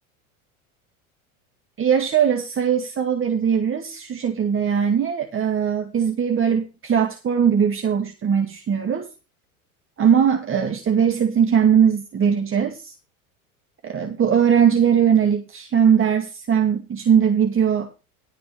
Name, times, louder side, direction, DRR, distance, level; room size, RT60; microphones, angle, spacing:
voice 1, 1.8-9.1 10.0-12.9 13.8-17.9, right 8 dB, 30° right, 2.2 m, -20 dB
13.0 x 5.1 x 7.1 m
hypercardioid pair, 85°, 43 cm